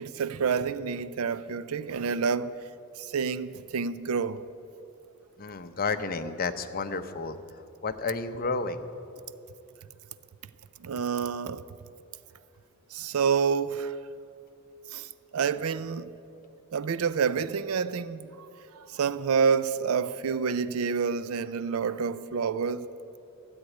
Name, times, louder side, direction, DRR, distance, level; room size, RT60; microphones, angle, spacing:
voice 1, 0.0-2.5 3.0-4.4 10.8-11.7 12.9-14.0 14.9-16.1 16.7-22.9, right 6 dB, 80° right, 0.5 m, -28 dB
voice 2, 5.4-7.4 7.8-8.9, left 4 dB, 45° left, 0.7 m, -31 dB
13.5 x 8.1 x 9.3 m
head